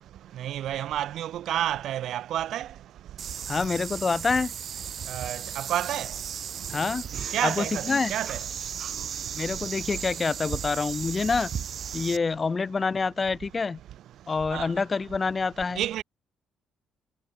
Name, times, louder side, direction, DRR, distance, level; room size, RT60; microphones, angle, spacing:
voice 1, 0.4-2.7 5.1-6.1 7.3-8.4 14.5-14.7 15.8-16.0, right 12 dB, 65° right, 0.4 m, -30 dB
Zischender Teebeutel Wasser, 3.2-12.2, right 8 dB, 45° right, 1.6 m, -35 dB
voice 2, 3.5-4.5 6.7-7.0 7.4-8.1 9.4-11.5 11.9-13.8 14.3-15.8, left 4 dB, 25° left, 0.5 m, -27 dB
cardioid pair, 150°, 0 cm